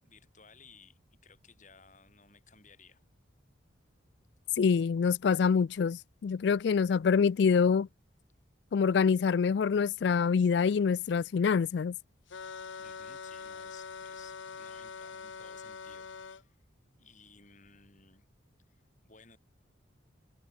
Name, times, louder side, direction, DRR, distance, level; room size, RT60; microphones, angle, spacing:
voice 1, 0.0-3.0 12.8-16.6 17.0-18.2 18.7-19.4, left 5 dB, 40° left, 7.9 m, -59 dB
voice 2, 4.6-7.9 8.7-11.9, left 6 dB, 60° left, 0.3 m, -26 dB
sound 1, 12.3-16.4, left 5 dB, 80° left, 0.8 m, -44 dB
head